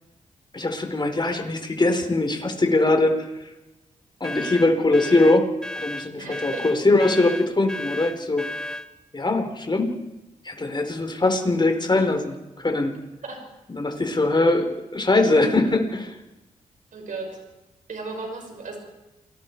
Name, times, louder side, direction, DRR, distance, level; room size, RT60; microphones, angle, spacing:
voice 1, 0.5-3.5 4.2-5.5 5.8-8.4 9.1-9.9 10.4-12.9 13.7-16.1, left 2 dB, 35° left, 4 dB, 4.1 m, -21 dB
sound 1, 4.2-8.9, left 1 dB, 5° left, 1.1 m, -34 dB
voice 2, 6.2-6.6 13.2-13.4 16.9-17.3 17.9-18.8, right 3 dB, 75° right, 2 dB, 5.8 m, -35 dB
28.5 x 20.0 x 4.6 m, 1.0 s
cardioid pair, 50°, 14 cm